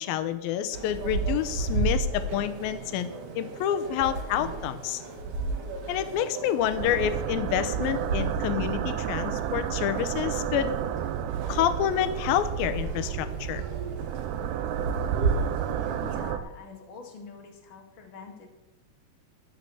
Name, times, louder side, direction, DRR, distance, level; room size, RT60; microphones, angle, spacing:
voice 1, 0.0-5.0 5.9-10.7 11.5-13.6, left 11 dB, 75° left, 11 dB, 2.5 m, -28 dB
sound 1, 0.7-16.3, right 3 dB, 50° right, 2.0 m, -34 dB
sound 2, 6.8-16.4, right 10 dB, 75° right, 2.0 m, -32 dB
voice 2, 16.0-18.5, left 5 dB, 40° left, 1 dB, 2.3 m, -45 dB
14.5 x 7.0 x 7.0 m, 1.0 s
omnidirectional pair, 4.6 m